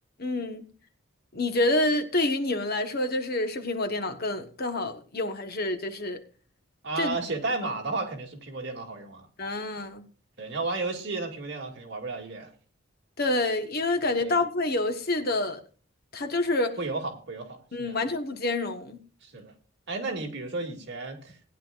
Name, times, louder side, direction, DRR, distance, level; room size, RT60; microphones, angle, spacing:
voice 1, 0.2-0.6 1.3-6.2 7.0-7.2 9.4-10.1 13.2-15.6 16.1-16.8 17.7-19.0, left 2 dB, 50° left, 1.3 m, -27 dB
voice 2, 6.8-9.3 10.4-12.5 14.2-14.4 16.8-18.0 19.2-19.5 19.9-21.4, right 3 dB, 55° right, 2.4 m, -33 dB
18.5 x 10.0 x 2.5 m
head